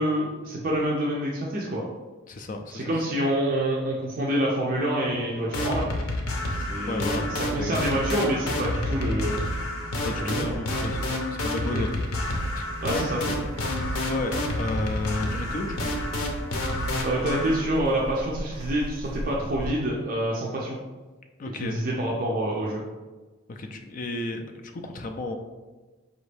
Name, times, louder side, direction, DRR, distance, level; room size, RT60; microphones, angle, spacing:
voice 1, 0.0-1.8 2.7-5.9 6.5-9.4 10.2-10.4 11.7-11.8 12.8-13.4 17.0-20.8 21.5-22.8, right 1 dB, 40° right, -4 dB, 0.5 m, -27 dB
voice 2, 2.3-2.9 6.9-7.3 7.6-7.9 10.0-12.1 12.6-12.8 14.0-15.9 21.4-21.8 22.0-22.1 23.5-25.3, left 2 dB, 40° left, 5 dB, 0.4 m, -33 dB
sound 1, 4.9-17.8, left 1 dB, 60° left, 1.0 m, -44 dB
sound 2, 5.5-17.6, left 1 dB, 85° left, 0.7 m, -29 dB
Crackle, 11.9-19.7, equal, 20° right, 1.2 m, -39 dB
4.9 x 2.6 x 3.3 m, 1.2 s
head